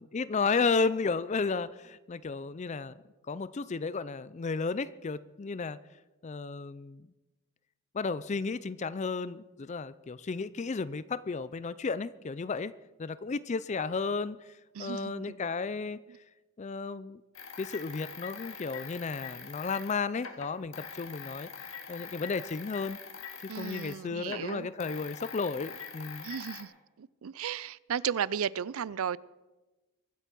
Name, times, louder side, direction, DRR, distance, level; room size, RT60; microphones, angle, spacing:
voice 1, 0.0-3.0 3.3-5.8 6.2-7.1 7.9-12.7 13.0-14.5 14.8-16.0 16.6-17.2 17.6-21.5 21.9-23.0 23.4-26.3, left 4 dB, 30° left, 0.4 m, -33 dB
voice 2, 14.7-15.2 23.5-24.7 26.2-26.7 27.0-29.2, right 8 dB, 70° right, 0.4 m, -34 dB
sound 1, 17.3-24.0 24.2-26.6, left 6 dB, 60° left, 1.9 m, -44 dB
23.5 x 8.1 x 6.0 m
head